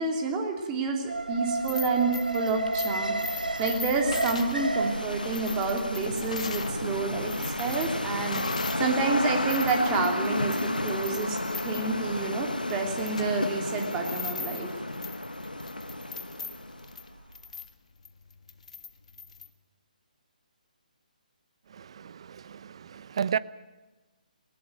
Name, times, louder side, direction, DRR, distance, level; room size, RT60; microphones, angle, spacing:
voice 1, 0.0-7.3 7.6-10.6 10.8-14.7, right 4 dB, 15° right, 2.9 m, -29 dB
Alarm, 1.1-17.2 17.5-17.6, right 2 dB, 75° right, 1.7 m, -36 dB
sound 1, 1.5-6.8 7.1-8.9 9.2-19.5, left 5 dB, 55° left, 1.7 m, -41 dB
sound 2, 2.6-17.1, left 1 dB, 80° left, 1.2 m, -33 dB
voice 2, 21.7-23.4, right 7 dB, 40° right, 0.7 m, -33 dB
20.0 x 18.5 x 9.1 m
figure-of-eight pair, 140°, 5 cm